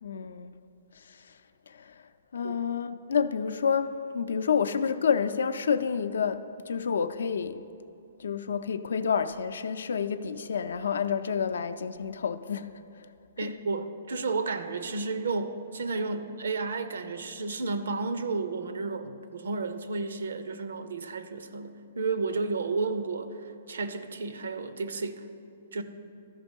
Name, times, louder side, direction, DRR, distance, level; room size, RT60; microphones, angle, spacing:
voice 1, 0.0-0.5 1.0-1.3 1.7-2.0 2.3-7.6 8.2-13.1 13.4-13.5, left 6 dB, 85° left, 11 dB, 0.4 m, -29 dB
voice 2, 13.4-25.2 25.7-25.8, right 3 dB, 85° right, 10 dB, 0.6 m, -32 dB
13.0 x 5.3 x 5.3 m, 2.7 s
hypercardioid pair, 150°, 0 cm